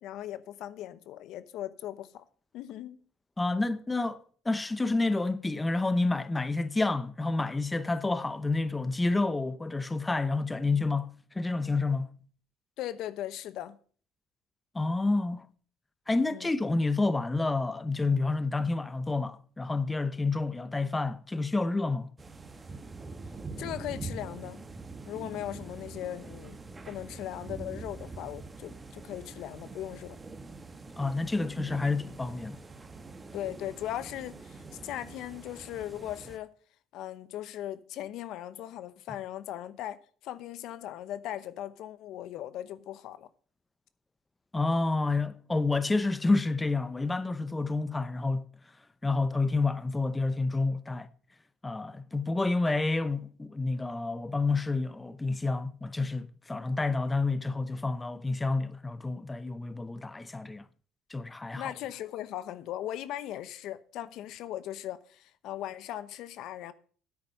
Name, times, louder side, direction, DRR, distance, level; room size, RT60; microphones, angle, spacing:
voice 1, 0.0-2.2 2.5-3.0 12.8-13.8 16.3-16.5 23.6-24.6 25.1-26.6 26.8-30.2 33.3-36.5 36.9-43.3 61.6-66.7, left 12 dB, 70° left, 0.9 m, -38 dB
voice 2, 3.4-12.1 14.7-15.5 16.1-22.1 31.0-32.6 44.5-48.4 49.0-51.1 51.6-60.6 61.1-61.7, left 3 dB, 15° left, 0.7 m, -29 dB
sound 1, 22.2-36.4, right 3 dB, 25° right, 1.3 m, -44 dB
9.7 x 8.8 x 5.3 m
cardioid pair, 100°, 0 cm